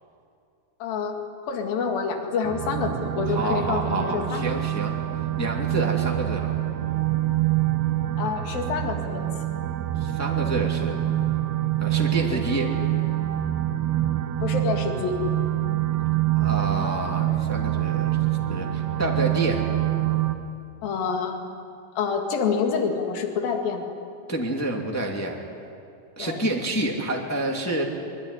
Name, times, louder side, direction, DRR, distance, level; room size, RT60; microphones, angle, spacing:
voice 1, 0.8-1.2 1.5-4.5 8.2-9.2 12.3-12.4 14.4-15.2 20.8-21.4 22.0-23.9 26.2-26.4, left 5 dB, 70° left, 3 dB, 4.0 m, -27 dB
sound 1, 2.4-20.4, right 14 dB, 80° right, 2.9 m, -26 dB
voice 2, 3.2-4.9 5.4-6.6 10.0-11.0 11.8-12.7 16.3-18.2 18.5-19.6 24.3-25.4 26.2-27.8, right 2 dB, 5° left, 0 dB, 1.8 m, -28 dB
23.5 x 23.5 x 10.0 m, 2.5 s
omnidirectional pair, 4.3 m